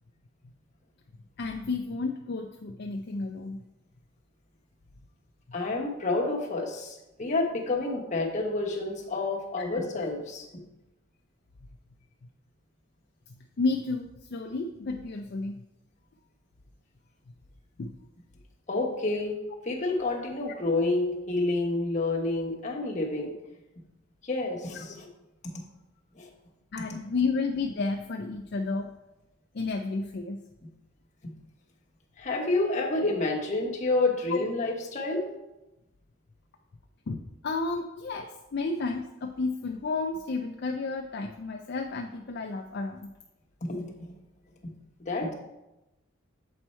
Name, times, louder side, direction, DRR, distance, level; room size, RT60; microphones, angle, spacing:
voice 1, 1.4-3.6 9.6-9.8 13.6-15.6 17.8-18.0 26.7-28.9 29.5-30.4 33.0-33.1 34.3-34.4 37.1-43.1, left 3 dB, 50° left, 3 dB, 0.4 m, -31 dB
voice 2, 5.5-10.5 18.7-19.3 19.6-23.3 24.2-25.1 25.4-25.6 26.1-26.3 31.2-31.3 32.2-35.2 43.6-43.9 44.6-44.7 45.0-45.3, left 2 dB, 35° left, -1 dB, 1.2 m, -29 dB
7.6 x 4.5 x 4.3 m, 0.96 s
head